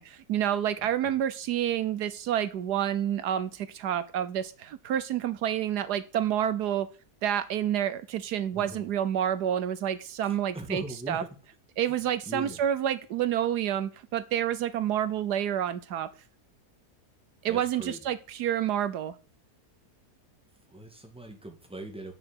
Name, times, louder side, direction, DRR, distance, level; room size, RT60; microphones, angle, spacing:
voice 1, 0.0-6.9 7.2-10.8 11.1-11.2 11.8-16.1 17.4-19.1, right 10 dB, 80° right, 14 dB, 1.3 m, -29 dB
voice 2, 0.8-1.1 8.5-8.8 10.2-11.4 11.8-12.6 17.5-18.2 20.7-22.1, right 1 dB, 5° right, 3 dB, 1.9 m, -41 dB
6.9 x 6.6 x 7.8 m, 0.37 s
omnidirectional pair, 1.7 m